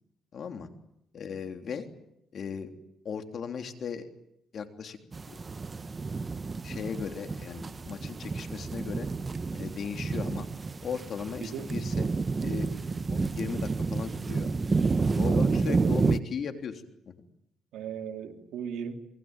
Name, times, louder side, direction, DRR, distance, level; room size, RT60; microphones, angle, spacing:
voice 1, 0.3-0.7 1.1-1.9 2.3-2.7 3.0-4.1 4.5-5.0 5.3-5.4 6.6-9.1 9.5-10.5 10.8-12.0 12.4-12.8 13.1-14.5 15.2-17.1, left 6 dB, 55° left, 3.4 m, -37 dB
sound 1, 5.1-16.2, right 4 dB, 30° right, 1.1 m, -30 dB
voice 2, 15.3-16.0 17.7-19.0, right 8 dB, 80° right, 3.1 m, -37 dB
27.5 x 22.0 x 9.1 m
cardioid pair, 90°, 0 cm